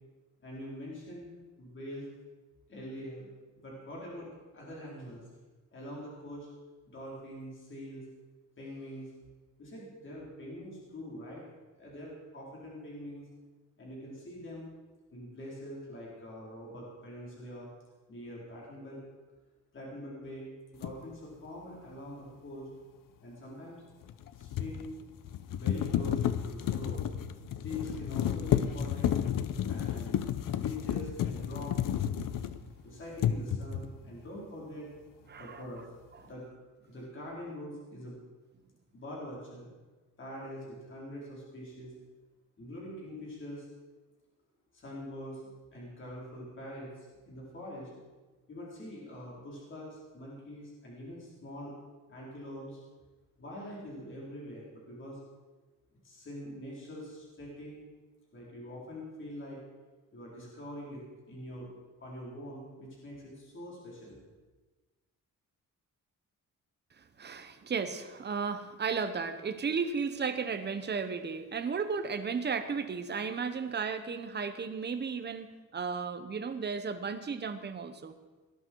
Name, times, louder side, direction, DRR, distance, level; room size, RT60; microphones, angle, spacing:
voice 1, 0.4-1.3 1.6-2.0 2.7-3.3 3.6-5.2 5.7-6.5 6.9-8.1 8.6-9.1 9.6-11.4 11.8-13.3 13.8-14.7 15.1-17.7 18.1-19.0 19.7-22.7 23.2-23.8 24.3-24.9 25.5-27.0 27.6-29.1 29.7-30.2 30.5-31.8 32.0-32.1 32.8-34.9 35.4-35.8 36.2-36.5 36.8-38.2 38.9-39.7 40.2-41.9 42.6-43.6 44.7-45.4 45.7-47.9 48.5-51.7 52.1-52.8 53.4-55.2 56.0-57.8 58.3-59.6 60.1-61.0 61.3-61.7 62.0-64.2, left 1 dB, 40° left, -4 dB, 4.5 m, -44 dB
sound 1, 20.8-21.0 24.0-32.8 33.2-34.0, left 10 dB, 80° left, 0.8 m, -31 dB
voice 2, 35.3-35.6 67.0-78.2, right 5 dB, 30° right, 8 dB, 1.1 m, -34 dB
19.0 x 11.5 x 4.7 m, 1.2 s
wide cardioid pair, 160°, 32 cm